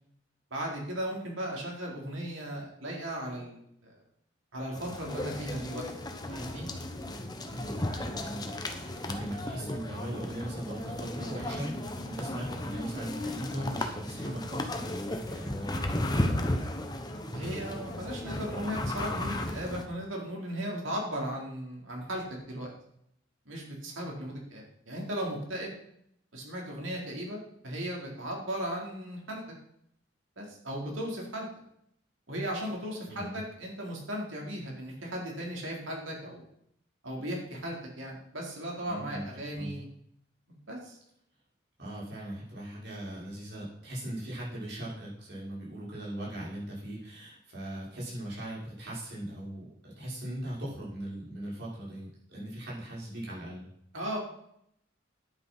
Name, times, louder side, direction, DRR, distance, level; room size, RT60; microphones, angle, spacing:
voice 1, 0.5-3.9 4.5-5.8 6.2-6.7 17.3-22.7 23.5-25.7 26.3-29.4 30.4-31.5 32.3-36.4 37.0-39.9 40.7-41.0 53.9-54.2, equal, 80° right, -1 dB, 4.2 m, -36 dB
sound 1, 4.7-19.8, left 1 dB, 20° left, 1.1 m, -35 dB
voice 2, 7.5-16.0 33.1-33.4 38.9-39.2 39.5-39.8 41.8-53.6, right 1 dB, 55° right, -6 dB, 6.2 m, -39 dB
10.5 x 9.0 x 5.7 m, 0.72 s
head